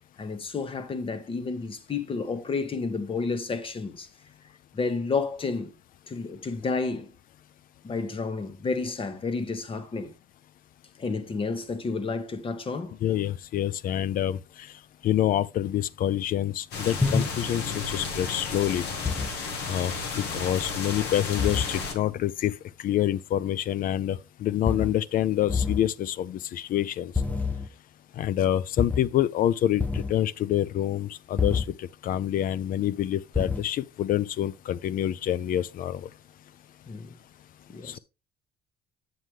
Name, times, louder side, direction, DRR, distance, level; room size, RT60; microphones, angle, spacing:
voice 1, 0.2-4.1 4.7-5.7 6.1-7.1 7.8-10.1 11.0-12.9 36.9-37.1 37.7-38.0, left 4 dB, 30° left, 1.2 m, -31 dB
voice 2, 13.0-14.7 15.0-18.8 19.7-22.5 22.8-27.1 28.2-36.1 37.8-38.0, left 12 dB, 55° left, 0.5 m, -27 dB
sound 1, 16.7-21.9, left 4 dB, 85° left, 1.6 m, -33 dB
sound 2, 17.0-17.3 19.0-19.3 21.4-21.7 24.7-24.9 25.5-25.8 27.1-27.7 28.8-29.0 29.8-30.1 31.4-31.6 33.3-33.6, left 4 dB, 10° left, 0.6 m, -26 dB
7.9 x 7.4 x 3.3 m
cardioid pair, 110°, 17 cm